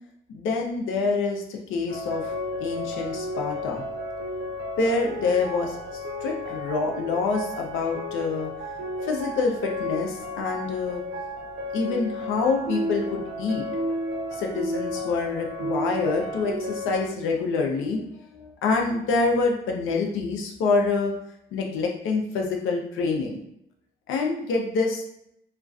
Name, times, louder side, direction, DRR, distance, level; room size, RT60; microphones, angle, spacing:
voice 1, 0.3-2.3 2.6-3.8 4.8-8.5 9.0-11.0 11.7-13.6 14.3-21.1 21.5-23.4 24.1-25.0, left 4 dB, 85° left, 1 dB, 0.5 m, -26 dB
sound 1, 1.9-17.1, left 1 dB, 60° right, 0.5 m, -32 dB
2.3 x 2.2 x 2.4 m, 0.75 s
cardioid pair, 90°, 20 cm